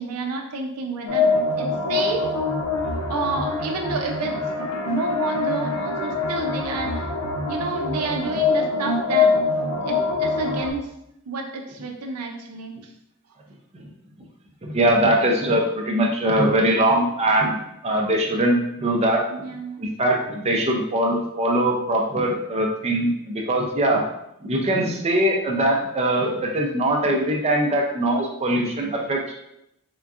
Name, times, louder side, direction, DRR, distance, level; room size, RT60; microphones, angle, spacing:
voice 1, 0.0-2.2 3.1-4.4 4.6-7.1 7.5-9.3 9.8-10.9 11.3-12.7 19.3-19.9, right 3 dB, 85° right, 2 dB, 0.6 m, -30 dB
sound 1, 1.1-10.7, left 4 dB, 75° left, 0.6 m, -24 dB
voice 2, 14.6-19.2 19.8-24.0 24.4-29.3, right 1 dB, 30° right, 0 dB, 0.5 m, -22 dB
3.7 x 3.5 x 2.4 m, 0.80 s
head